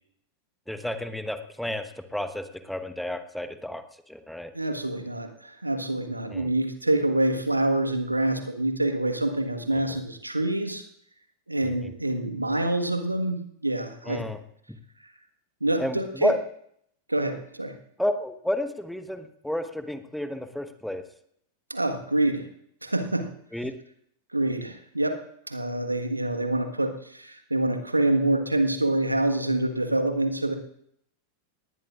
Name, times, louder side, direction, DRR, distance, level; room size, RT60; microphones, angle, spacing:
voice 1, 0.7-4.5 6.3-6.5 9.7-10.0 11.6-11.9 14.0-14.4 15.8-16.4 18.0-21.0 23.5-23.7, left 1 dB, ahead, 9 dB, 1.1 m, -31 dB
voice 2, 4.5-10.8 11.5-14.2 15.6-16.3 17.1-17.8 21.7-22.5 22.8-23.3 24.3-25.2 25.5-30.5, right 1 dB, 85° right, 7 dB, 1.5 m, -26 dB
19.0 x 18.5 x 2.5 m, 0.70 s
figure-of-eight pair, 90°, 0 cm